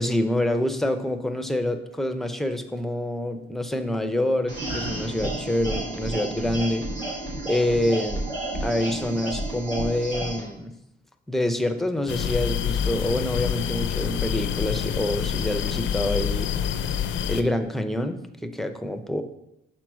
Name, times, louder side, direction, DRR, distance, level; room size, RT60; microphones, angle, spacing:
voice 1, 0.0-6.9 7.4-8.2 8.6-10.7 11.3-16.5 17.3-19.2, left 1 dB, ahead, 7 dB, 0.6 m, -26 dB
sound 1, 4.5-10.4, right 1 dB, 75° right, 2.7 m, -31 dB
sound 2, 12.1-17.4, left 8 dB, 75° left, 0.5 m, -27 dB
6.0 x 4.2 x 6.2 m, 0.85 s
cardioid pair, 90°, 20 cm